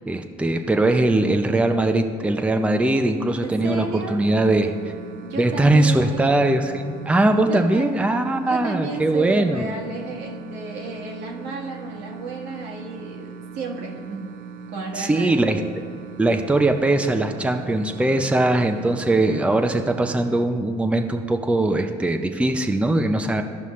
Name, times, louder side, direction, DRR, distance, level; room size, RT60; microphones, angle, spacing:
voice 1, 0.1-4.9 5.4-9.7 14.9-15.6 16.2-23.4, right 2 dB, 5° right, 5 dB, 0.6 m, -21 dB
voice 2, 3.4-4.2 5.2-6.6 7.5-14.3 14.7-15.4, right 3 dB, 80° right, -1 dB, 1.7 m, -32 dB
sound 1, 3.6-20.4, right 6 dB, 60° right, 0.7 m, -40 dB
15.0 x 5.4 x 3.2 m, 2.2 s
supercardioid pair, 90°, 16 cm